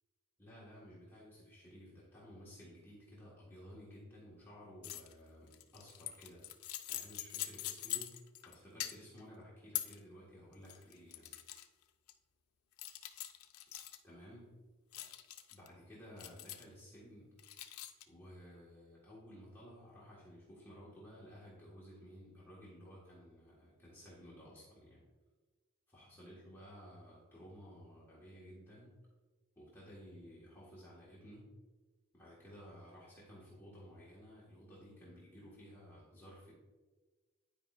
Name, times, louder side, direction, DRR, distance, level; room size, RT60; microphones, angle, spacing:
voice 1, 0.4-6.5 6.9-11.3 14.0-14.5 15.5-17.3 18.1-25.0 25.9-29.0 29.5-31.5 32.1-36.5, equal, 10° left, -8 dB, 1.5 m, -55 dB
sound 1, 4.8-5.1 5.5-8.5 8.8-9.2 9.7-10.0 10.5-11.6 12.1-12.2 12.8-14.0 14.9-15.7 16.2-16.8 17.4-18.0, left 13 dB, 85° left, 0.5 m, -43 dB
10.0 x 4.9 x 2.5 m, 1.3 s
head